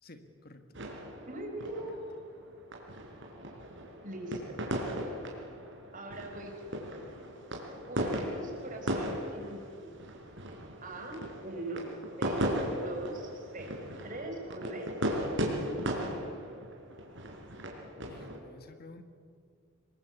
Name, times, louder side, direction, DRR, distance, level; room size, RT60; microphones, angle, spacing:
voice 1, 0.0-0.8 1.8-2.0 18.1-19.0, left 2 dB, 45° left, 8 dB, 1.9 m, -52 dB
sound 1, 0.7-18.4, equal, 60° right, 4.6 m, -37 dB
voice 2, 1.3-2.1 4.0-4.4 5.9-6.7 7.9-9.9 10.8-11.9 12.2-12.6 12.8-13.8 14.0-15.3, right 1 dB, 40° right, 2 dB, 5.4 m, -41 dB
26.5 x 21.5 x 8.4 m, 2.2 s
head